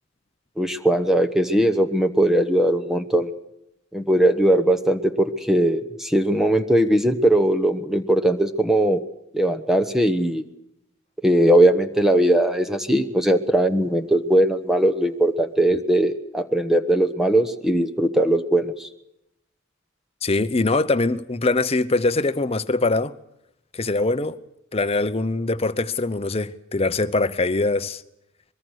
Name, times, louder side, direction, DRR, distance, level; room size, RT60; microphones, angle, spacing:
voice 1, 0.6-3.3 3.9-9.0 9.3-10.4 11.2-18.9, right 1 dB, ahead, 1.1 m, -19 dB
voice 2, 20.2-23.1 23.7-24.4 24.7-28.0, left 3 dB, 30° left, 0.9 m, -22 dB
24.0 x 22.5 x 6.5 m
head